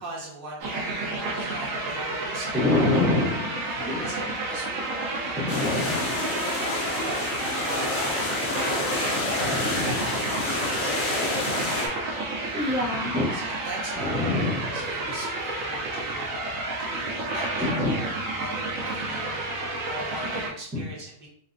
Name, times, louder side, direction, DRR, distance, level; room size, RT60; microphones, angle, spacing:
voice 1, 0.0-3.3 3.7-5.8 6.3-11.3 13.3-14.3 14.6-21.3, right 1 dB, 45° right, -4 dB, 1.1 m, -40 dB
sound 1, 0.6-20.5, right 2 dB, 75° right, 1.0 m, -31 dB
voice 2, 2.5-4.1 5.3-6.3 9.4-10.0 12.5-13.3 14.0-14.7 15.0-15.1 17.6-17.9 20.7-20.8, left 2 dB, 10° right, -6 dB, 0.6 m, -26 dB
sound 2, 5.5-11.9, left 2 dB, 70° left, 1.0 m, -29 dB
4.1 x 2.2 x 2.5 m, 0.65 s
omnidirectional pair, 1.4 m